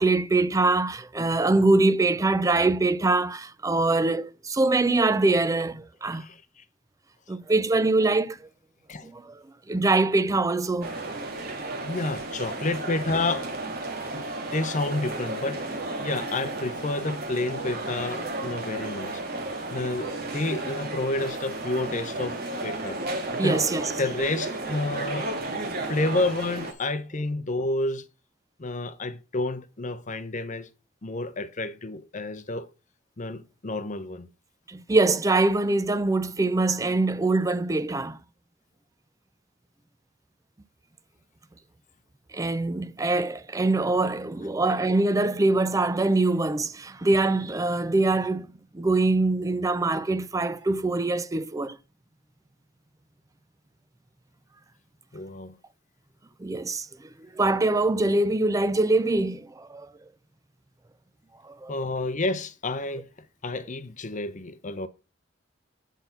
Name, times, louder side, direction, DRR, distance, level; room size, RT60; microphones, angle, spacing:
voice 1, 0.0-6.3 7.3-8.4 9.0-9.3 9.7-10.9 23.3-23.9 34.7-38.2 42.3-48.5 48.7-51.8 56.4-56.9 57.4-59.9 61.5-61.7, right 2 dB, 15° right, 0.4 m, -23 dB
voice 2, 6.1-6.6 7.3-7.4 8.9-9.1 11.8-13.5 14.1-14.2 14.5-15.6 16.0-19.2 19.7-23.0 23.3-23.6 24.0-25.3 25.9-28.0 28.6-30.7 31.0-32.7 33.2-34.3 55.1-55.6 61.7-63.1 63.4-64.9, left 2 dB, 40° left, 0.8 m, -30 dB
sound 1, 10.8-26.7, right 2 dB, 50° right, 1.6 m, -33 dB
9.1 x 4.0 x 5.6 m
head